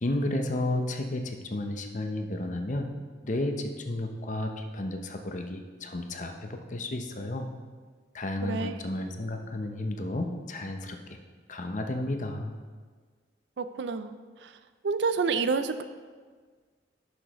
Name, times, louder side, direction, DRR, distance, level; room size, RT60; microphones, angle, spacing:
voice 1, 0.0-2.9 3.2-7.5 8.1-11.0 11.5-12.5, left 1 dB, 45° left, 5 dB, 0.7 m, -32 dB
voice 2, 8.4-8.8 13.6-14.1 14.4-14.5 14.8-15.8, right 4 dB, 70° right, 11 dB, 0.4 m, -28 dB
11.0 x 6.3 x 3.0 m, 1.5 s
head